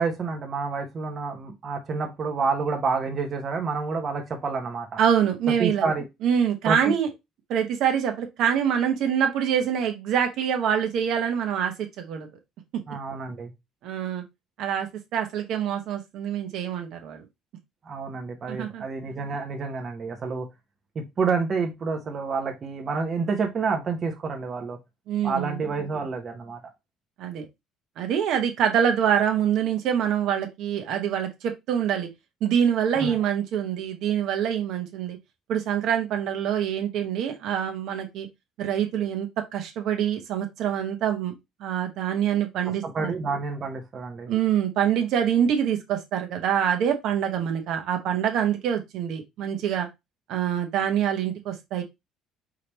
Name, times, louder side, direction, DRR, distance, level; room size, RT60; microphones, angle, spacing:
voice 1, 0.0-5.0 5.6-6.1 6.7-6.9 12.9-13.5 17.8-20.5 20.9-24.8 25.2-26.6 33.0-33.2 42.8-44.3, right 4 dB, 35° right, 0.9 m, -28 dB
voice 2, 5.0-5.9 6.2-7.1 7.5-12.3 13.8-14.2 14.6-17.3 18.5-18.8 25.1-25.6 27.2-27.5 28.0-32.1 32.4-35.2 35.5-38.3 38.6-43.1 44.3-49.9 50.3-51.8, right 9 dB, 60° right, 1.0 m, -25 dB
4.8 x 3.3 x 2.9 m
cardioid pair, 140°, 0 cm